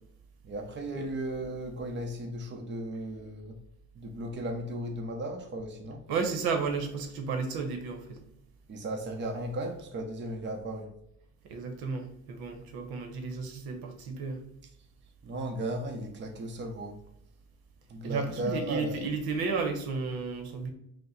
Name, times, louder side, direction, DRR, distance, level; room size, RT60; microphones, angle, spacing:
voice 1, 0.4-3.6 3.9-6.0 8.7-10.9 15.2-17.0 17.9-19.1, right 1 dB, 30° right, 3 dB, 0.8 m, -36 dB
voice 2, 6.1-8.2 11.4-14.4 18.0-20.7, right 4 dB, 70° right, 5 dB, 1.0 m, -33 dB
5.1 x 2.1 x 3.9 m, 0.77 s
cardioid pair, 105°, 38 cm